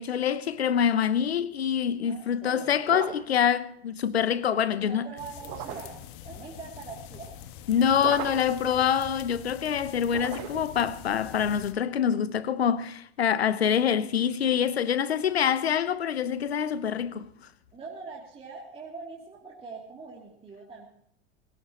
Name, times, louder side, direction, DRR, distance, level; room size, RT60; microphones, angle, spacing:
voice 1, 0.0-5.1 7.7-17.3, left 8 dB, 70° left, 1.0 m, -25 dB
voice 2, 2.0-2.9 4.8-6.0 6.2-7.3 17.7-20.9, right 4 dB, 15° right, 2.8 m, -43 dB
sound 1, 2.8-3.4 5.4-6.0 8.0-8.6 10.1-10.8, right 14 dB, 45° right, 1.3 m, -37 dB
sound 2, 5.2-11.7, left 10 dB, 50° left, 1.4 m, -45 dB
22.0 x 18.0 x 3.0 m
figure-of-eight pair, 85°, 33 cm